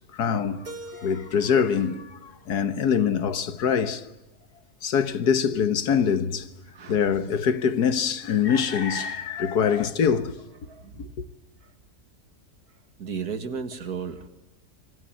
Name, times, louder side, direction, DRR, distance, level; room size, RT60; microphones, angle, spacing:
voice 1, 0.1-4.1 4.8-6.5 6.9-10.4 11.0-11.1, left 7 dB, 75° left, 1.8 m, -24 dB
Keyboard (musical), 0.7-3.6, equal, 85° right, 3.7 m, -46 dB
voice 2, 6.7-7.2 9.4-9.8 10.7-11.0 11.6-11.7 13.0-14.3, right 6 dB, 70° right, 2.4 m, -35 dB
26.5 x 24.0 x 9.0 m
omnidirectional pair, 1.7 m